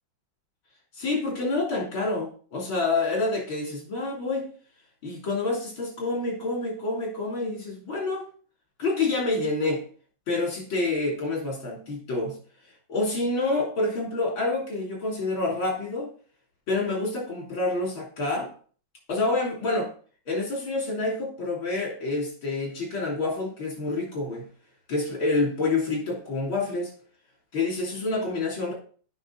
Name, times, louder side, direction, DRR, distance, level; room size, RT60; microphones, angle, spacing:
voice 1, 1.0-4.5 5.0-8.3 8.8-9.8 10.3-12.4 12.9-16.1 16.7-18.5 19.1-19.9 20.3-24.5 24.9-26.9 27.5-28.7, left 2 dB, 80° left, -2 dB, 4.0 m, -27 dB
8.8 x 5.6 x 4.1 m, 0.43 s
omnidirectional pair, 2.2 m